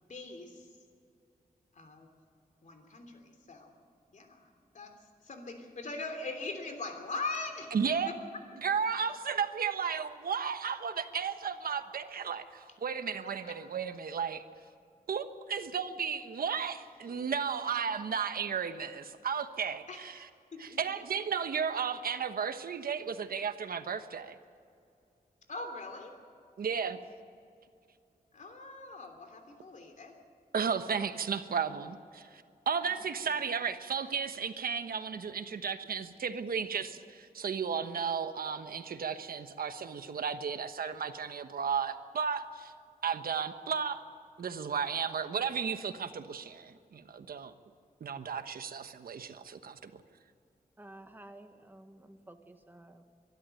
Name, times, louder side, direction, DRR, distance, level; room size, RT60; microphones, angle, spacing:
voice 1, 0.1-0.7 1.7-2.1 2.6-3.7 4.1-4.5 4.7-4.9 5.2-8.1 13.2-13.6 19.9-20.0 20.5-20.8 25.5-26.2 28.3-30.2, left 3 dB, 55° left, 5 dB, 3.2 m, -41 dB
voice 2, 7.7-8.1 8.6-14.4 15.1-20.3 20.6-24.4 26.6-27.0 30.5-42.7 43.0-44.0 44.4-47.5 48.0-50.0, right 6 dB, 80° right, 9 dB, 1.2 m, -34 dB
voice 3, 50.8-53.0, right 1 dB, 15° right, 6 dB, 1.5 m, -52 dB
24.0 x 12.5 x 9.0 m, 2.4 s
wide cardioid pair, 125°, 15 cm